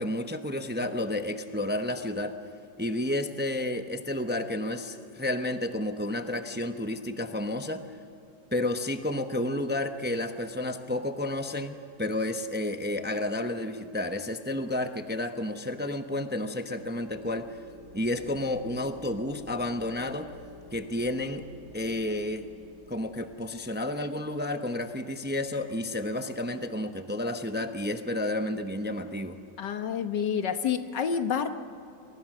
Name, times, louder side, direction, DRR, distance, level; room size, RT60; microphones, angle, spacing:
voice 1, 0.0-2.4 2.8-7.9 8.5-17.5 17.9-20.3 20.7-21.5 21.7-22.5 22.9-29.4, left 1 dB, 10° right, 7 dB, 0.5 m, -31 dB
sound 1, 16.3-24.0, left 2 dB, 40° left, 3.5 m, -50 dB
voice 2, 29.6-31.5, left 7 dB, 70° left, 8 dB, 1.8 m, -28 dB
30.0 x 23.0 x 6.3 m, 2.7 s
omnidirectional pair, 2.0 m